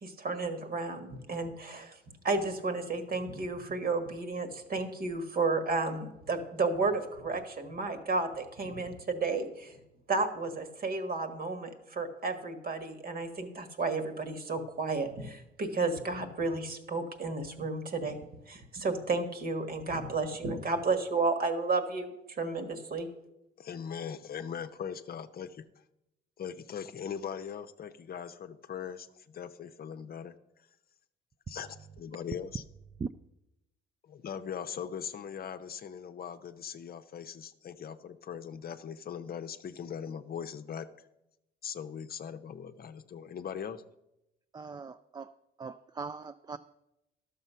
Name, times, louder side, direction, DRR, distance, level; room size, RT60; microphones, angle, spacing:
voice 1, 0.0-2.0 2.2-9.7 10.1-23.1, right 3 dB, 50° right, 7 dB, 1.5 m, -32 dB
voice 2, 23.6-25.6 26.4-30.3 31.5-32.6 34.0-40.9 41.6-43.8, left 7 dB, 50° left, 9 dB, 0.7 m, -40 dB
voice 3, 44.5-45.3 45.6-46.6, right 5 dB, 20° right, 9 dB, 0.3 m, -40 dB
12.0 x 6.7 x 5.6 m, 0.88 s
cardioid pair, 90°, 20 cm